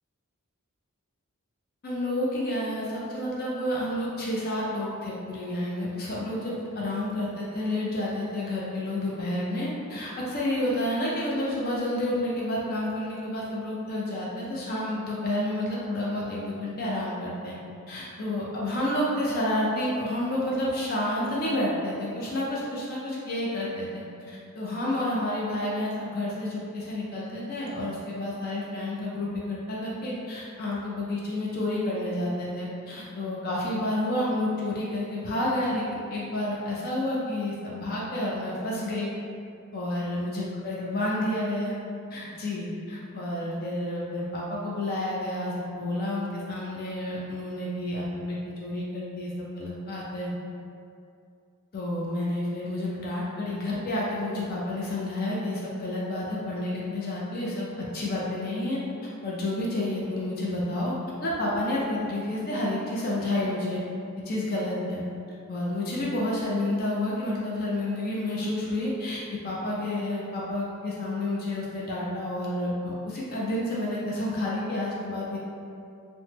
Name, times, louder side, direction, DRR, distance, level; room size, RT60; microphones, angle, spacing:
voice 1, 1.8-17.6 17.9-39.1 39.7-41.8 42.1-50.3 51.7-58.8 59.2-60.9 61.2-63.8 64.3-65.0 65.5-75.4, left 1 dB, 45° left, -5 dB, 0.4 m, -30 dB
3.3 x 2.0 x 2.8 m, 2.5 s
head